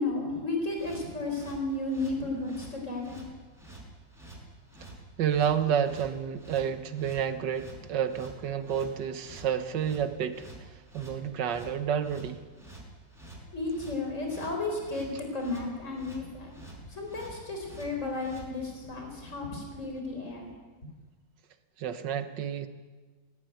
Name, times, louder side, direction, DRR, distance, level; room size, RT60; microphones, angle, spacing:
voice 1, 0.0-3.2 13.5-16.5 16.8-20.5 20.8-20.9, left 2 dB, 40° left, 2 dB, 4.8 m, -33 dB
sound 1, 0.7-18.5, right 2 dB, ahead, 5.3 m, -49 dB
voice 2, 5.2-12.4 21.8-22.7, right 8 dB, 70° right, 10 dB, 1.8 m, -30 dB
18.0 x 16.5 x 9.4 m, 1.3 s
omnidirectional pair, 2.0 m